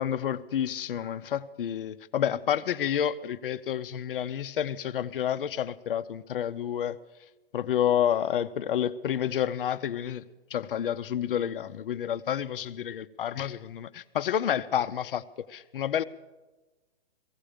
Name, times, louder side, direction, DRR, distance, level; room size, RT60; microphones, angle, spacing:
voice 1, 0.0-7.0 7.5-10.2 10.5-16.0, left 9 dB, 60° left, 0.7 m, -29 dB
16.5 x 16.0 x 5.0 m
hypercardioid pair, 155°, 31 cm